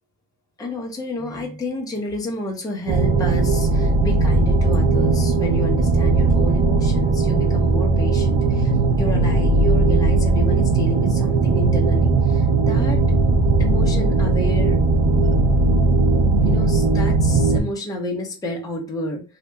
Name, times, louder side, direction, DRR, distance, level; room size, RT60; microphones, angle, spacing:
voice 1, 0.6-13.0 13.6-14.8 16.4-19.2, left 1 dB, 10° left, -1 dB, 0.7 m, -30 dB
sound 1, 2.9-17.6, right 3 dB, 70° right, 1.0 m, -18 dB
2.8 x 2.7 x 3.3 m, 0.30 s
cardioid pair, 165°, 48 cm